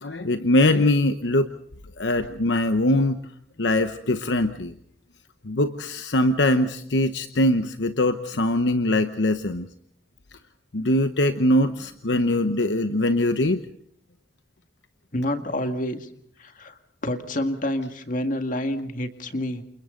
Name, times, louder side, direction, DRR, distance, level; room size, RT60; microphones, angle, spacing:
voice 1, 0.0-1.5 2.0-3.2 3.6-4.7 5.4-9.7 10.7-13.6, left 1 dB, 75° left, 9 dB, 1.0 m, -22 dB
voice 2, 15.1-16.1 16.4-19.6, left 1 dB, 45° left, 7 dB, 2.0 m, -28 dB
29.0 x 28.5 x 3.9 m, 0.63 s
head